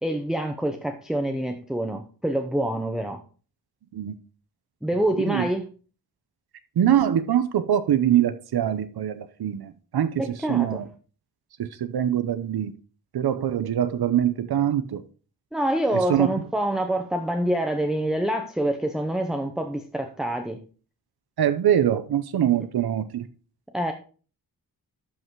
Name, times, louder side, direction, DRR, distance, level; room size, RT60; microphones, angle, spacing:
voice 1, 0.0-3.2 4.8-5.7 10.2-10.8 15.5-20.6 23.7-23.9, right 1 dB, ahead, 0.7 m, -26 dB
voice 2, 6.8-10.1 10.5-10.9 11.6-12.7 13.1-15.0 15.9-16.3 21.4-23.3, right 10 dB, 80° right, 0.8 m, -23 dB
12.0 x 5.6 x 4.6 m
wide cardioid pair, 160°, 37 cm